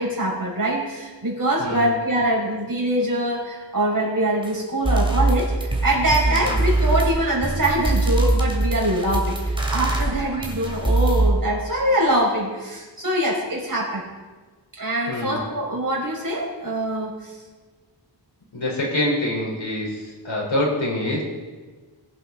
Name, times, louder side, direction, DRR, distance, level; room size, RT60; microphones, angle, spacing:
voice 1, 0.0-9.4 9.7-14.0 14.7-17.3, right 1 dB, 45° right, -3 dB, 5.2 m, -23 dB
voice 2, 1.6-1.9 6.2-6.6 15.1-15.4 18.5-21.2, left 1 dB, 80° left, -2 dB, 4.4 m, -25 dB
sound 1, 4.4-4.5 4.8-11.3, right 2 dB, 10° right, 2.7 m, -22 dB
21.5 x 10.5 x 4.1 m, 1.3 s
wide cardioid pair, 80°, 45 cm